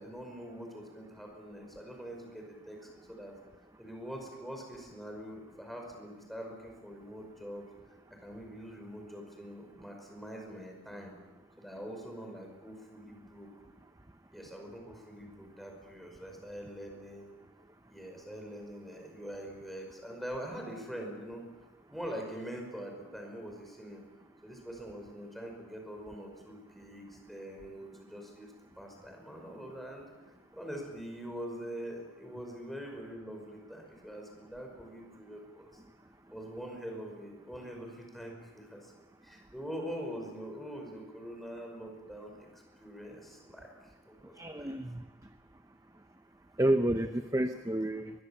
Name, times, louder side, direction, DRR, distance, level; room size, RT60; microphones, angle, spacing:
voice 1, 0.0-3.3 3.8-7.6 8.2-11.1 11.6-13.5 14.3-17.3 17.9-21.4 21.9-24.0 24.4-28.5 28.8-30.1 30.5-35.8 36.3-38.9 39.2-43.7 44.1-44.7, equal, ahead, 1 dB, 5.3 m, -44 dB
voice 2, 44.4-45.0 46.6-48.1, right 1 dB, 15° right, 8 dB, 0.7 m, -29 dB
23.0 x 22.5 x 7.2 m, 1.2 s
head